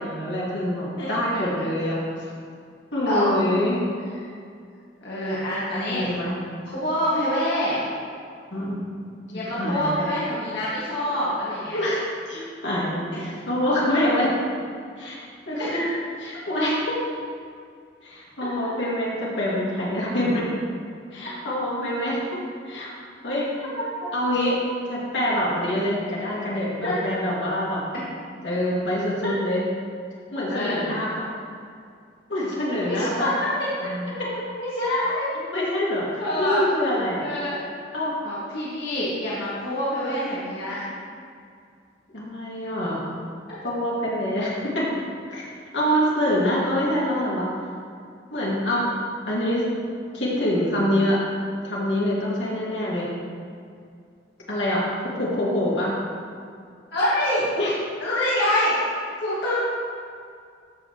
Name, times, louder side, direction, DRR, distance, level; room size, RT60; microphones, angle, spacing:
voice 1, 0.0-2.2 2.9-3.8 5.9-6.3 8.5-8.8 9.6-9.9 11.7-14.4 15.0-15.9 16.2-17.0 18.0-20.5 21.1-22.2 22.6-22.9 23.2-23.7 24.1-24.6 24.9-27.8 28.4-29.6 30.3-31.3 32.3-33.3 33.8-34.5 35.5-37.2 37.9-38.1 42.1-43.0 43.6-44.9 45.3-45.4 45.7-47.5 48.3-48.9 49.3-49.6 50.1-51.2 51.6-53.1 54.5-56.0 57.6-57.7, left 1 dB, 80° left, -6 dB, 2.3 m, -25 dB
voice 2, 1.0-1.4 3.1-3.3 5.0-6.1 6.7-7.8 9.3-11.8 13.1-13.4 15.6-15.9 26.8-26.9 29.2-29.3 30.5-30.8 32.9-33.3 33.6-33.7 34.6-35.3 36.2-36.7 37.2-37.6 38.2-40.9 56.9-57.5 58.0-58.8 59.2-59.5, left 1 dB, 65° left, -9 dB, 1.9 m, -26 dB
14.0 x 6.0 x 3.1 m, 2.3 s
head